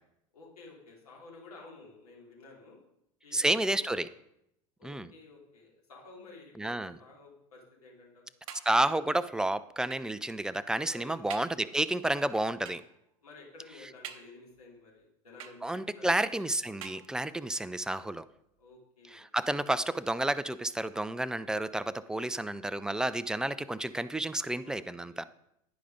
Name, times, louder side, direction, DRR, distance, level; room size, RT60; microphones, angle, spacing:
voice 1, 0.3-2.8 3.2-4.0 4.8-8.2 10.9-11.4 13.2-16.1 18.6-19.3 21.3-21.5 22.1-22.4 24.6-25.2, left 3 dB, 80° left, -3 dB, 2.8 m, -52 dB
voice 2, 3.3-4.1 4.8-5.1 6.6-7.0 8.7-12.8 15.6-18.2 19.1-25.2, right 1 dB, 5° right, 15 dB, 0.3 m, -30 dB
sound 1, 8.5-9.1 9.9-10.2 10.8-10.9 11.3-11.7 12.7-13.0 14.0-14.7 15.4-16.0 16.8-17.5 18.3-18.4 18.7-18.8, right 8 dB, 70° right, 0.8 m, -47 dB
10.0 x 5.0 x 5.1 m, 0.78 s
figure-of-eight pair, 75°, 19 cm